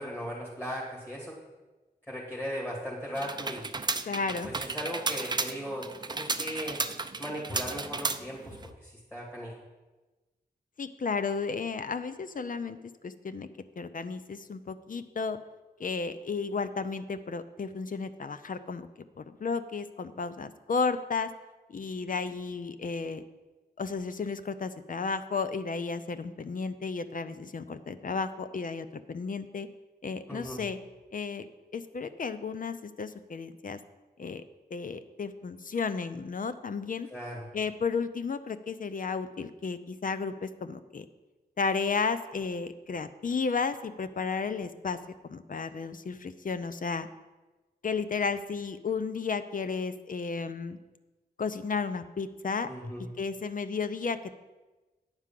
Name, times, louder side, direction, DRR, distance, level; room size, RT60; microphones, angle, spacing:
voice 1, 0.0-1.3 2.1-3.7 4.4-6.8 7.2-9.5 30.3-30.6 37.1-37.4 52.7-53.1, equal, 15° left, -6 dB, 2.7 m, -37 dB
sound 1, 3.1-8.7, right 3 dB, 25° right, 0.5 m, -33 dB
voice 2, 4.0-4.5 10.8-12.8 13.0-13.5 13.8-15.4 15.8-18.9 19.2-21.3 21.7-23.2 23.8-29.7 30.0-30.8 31.1-31.5 31.7-33.8 34.2-34.4 34.7-37.1 37.5-41.0 41.6-47.1 47.8-50.8 51.4-52.7 53.0-54.4, left 5 dB, 55° left, 11 dB, 0.6 m, -33 dB
9.8 x 4.8 x 7.5 m, 1.2 s
cardioid pair, 60°, 17 cm